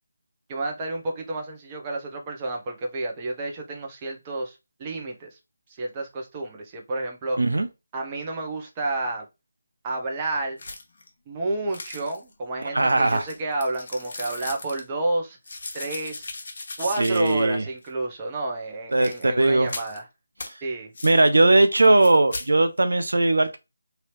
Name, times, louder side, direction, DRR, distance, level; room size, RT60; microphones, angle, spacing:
voice 1, 0.5-5.3 5.8-7.4 7.9-9.2 9.8-10.6 11.3-15.4 15.7-16.3 16.8-20.0 20.6-20.9, right 2 dB, 20° right, 0.8 m, -30 dB
sound 1, 10.6-11.1 11.7-12.3 12.9-14.8 15.4-17.5 17.8-17.9 18.9-19.2 19.7-20.0 20.4-20.5 20.9-21.2 21.8-22.5, left 3 dB, 55° left, 0.9 m, -38 dB
voice 2, 12.7-13.3 17.0-17.6 18.9-19.7 21.0-23.6, right 2 dB, 75° right, 0.5 m, -19 dB
2.8 x 2.8 x 3.2 m
figure-of-eight pair, 160°, 0 cm